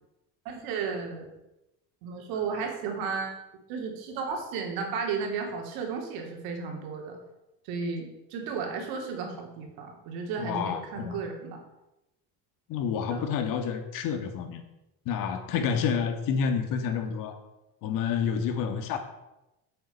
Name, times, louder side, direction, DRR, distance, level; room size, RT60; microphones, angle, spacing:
voice 1, 0.4-1.3 2.0-3.4 3.7-7.2 7.6-11.6 13.1-13.3, right 5 dB, 80° right, 2 dB, 3.0 m, -34 dB
voice 2, 10.4-11.2 12.7-14.6 15.1-17.4 17.8-19.0, left 6 dB, 65° left, 7 dB, 1.9 m, -29 dB
9.6 x 7.8 x 6.9 m, 0.94 s
cardioid pair, 155°, 36 cm